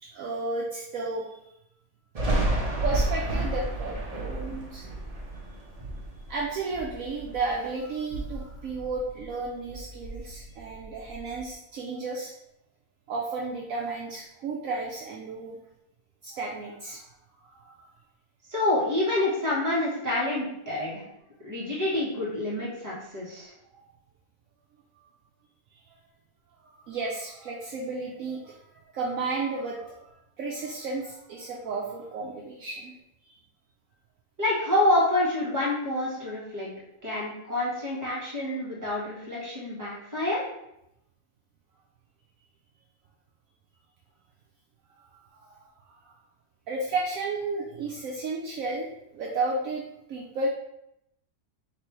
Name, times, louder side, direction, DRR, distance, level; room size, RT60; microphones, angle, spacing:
voice 1, 0.0-1.3 2.8-4.9 6.3-12.3 13.1-15.6 16.2-17.0 17.5-17.7 25.7-25.8 26.6-28.6 28.9-32.9 33.2-33.3 45.3-45.6 46.1-46.2 46.7-49.8 50.1-50.5, right 3 dB, 70° right, -2 dB, 0.9 m, -33 dB
Thunder, 2.1-7.6 7.9-9.4 9.7-11.4, right 1 dB, 35° right, 0.6 m, -31 dB
voice 2, 18.5-21.0 21.4-23.5 34.4-36.7 37.0-40.4, left 1 dB, 10° right, -7 dB, 1.5 m, -27 dB
3.3 x 3.1 x 4.5 m, 0.82 s
omnidirectional pair, 1.6 m